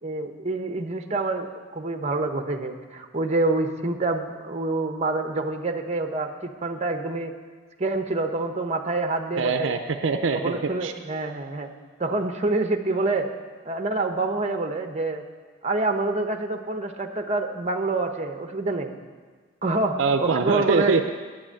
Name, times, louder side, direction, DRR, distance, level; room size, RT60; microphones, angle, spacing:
voice 1, 0.0-7.3 7.8-9.7 10.3-11.7 12.0-13.3 13.7-15.2 15.6-18.9 19.6-20.9, right 2 dB, 30° right, 6 dB, 0.8 m, -27 dB
voice 2, 9.4-10.9 20.0-21.1, right 4 dB, 65° right, 7 dB, 0.5 m, -23 dB
9.7 x 7.8 x 8.6 m, 1.5 s
head